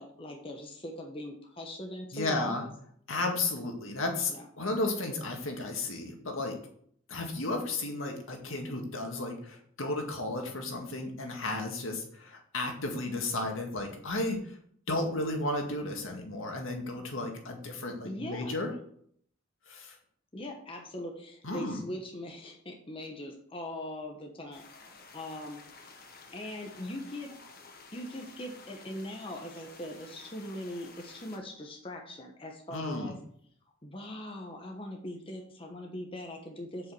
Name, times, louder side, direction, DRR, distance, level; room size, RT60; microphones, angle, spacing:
voice 1, 0.0-2.7 4.3-4.4 18.0-18.5 20.3-24.7 25.1-25.6 26.3-27.3 27.9-33.2 33.8-36.9, left 1 dB, 25° left, 1 dB, 1.2 m, -41 dB
voice 2, 2.1-2.6 3.1-6.6 7.1-14.6 14.9-18.7 19.7-20.0 21.4-21.8 32.7-33.2, left 2 dB, 70° left, 2 dB, 2.0 m, -33 dB
sound 1, 24.5-31.4, left 4 dB, 45° left, 1.4 m, -52 dB
7.6 x 5.6 x 7.1 m, 0.64 s
head